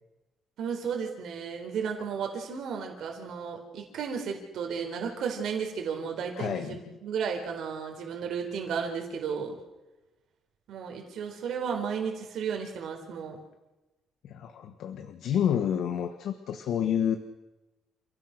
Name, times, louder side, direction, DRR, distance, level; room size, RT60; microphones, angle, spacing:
voice 1, 0.6-9.5 10.7-13.4, right 6 dB, 60° right, 2 dB, 4.3 m, -33 dB
voice 2, 6.4-6.9 14.2-17.2, left 9 dB, 65° left, 7 dB, 1.5 m, -29 dB
29.0 x 16.5 x 6.6 m, 1.1 s
cardioid pair, 160°, 0 cm